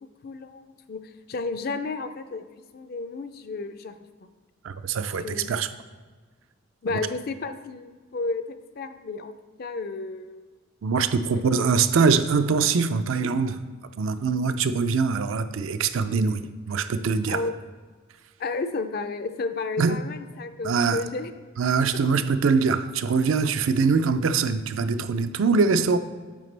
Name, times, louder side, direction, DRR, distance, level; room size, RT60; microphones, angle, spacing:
voice 1, 0.2-1.0 1.3-2.4 2.7-3.9 4.2-4.3 5.2-5.6 6.8-9.3 9.6-10.5 11.3-11.7 17.3-17.5 18.4-21.3, left 3 dB, 45° left, 9 dB, 0.4 m, -32 dB
voice 2, 4.6-5.7 10.8-13.6 14.0-17.4 19.8-20.0 20.6-21.0 21.6-26.0, right 5 dB, 70° right, 11 dB, 0.4 m, -23 dB
9.0 x 5.8 x 3.3 m, 1.4 s
head